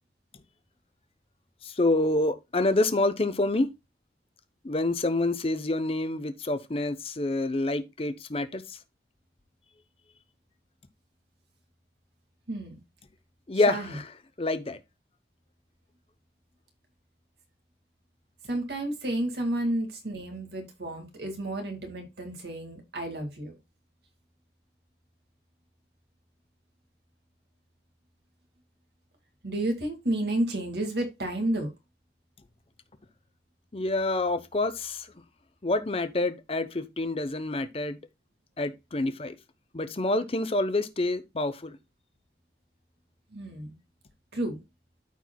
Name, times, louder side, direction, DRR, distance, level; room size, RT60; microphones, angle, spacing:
voice 1, 1.6-3.7 4.6-8.6 13.5-14.1 14.4-14.8 33.7-35.1 35.6-38.0 38.6-39.4 39.7-41.8, left 2 dB, 35° left, 0.8 m, -27 dB
voice 2, 12.5-12.8 13.7-14.0 18.5-23.5 29.4-31.7 43.3-43.8 44.3-44.6, right 1 dB, 65° right, 2.2 m, -31 dB
13.5 x 4.6 x 2.2 m
head